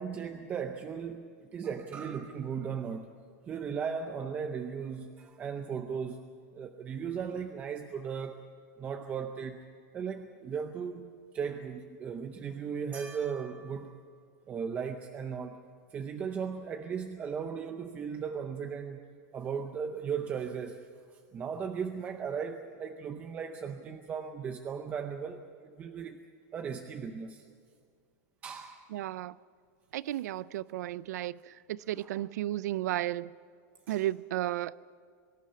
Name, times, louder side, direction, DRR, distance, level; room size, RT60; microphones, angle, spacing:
voice 1, 0.0-3.1 3.5-8.4 8.8-9.6 9.9-14.0 14.5-15.6 15.9-19.0 19.3-26.2 26.5-27.5 28.4-28.8 32.0-32.1 33.9-34.0, right 6 dB, 15° right, 0.6 m, -37 dB
voice 2, 28.9-29.4 29.9-33.3 33.9-34.8, right 14 dB, 85° right, 0.4 m, -33 dB
23.5 x 11.5 x 9.9 m
supercardioid pair, 175°, 9 cm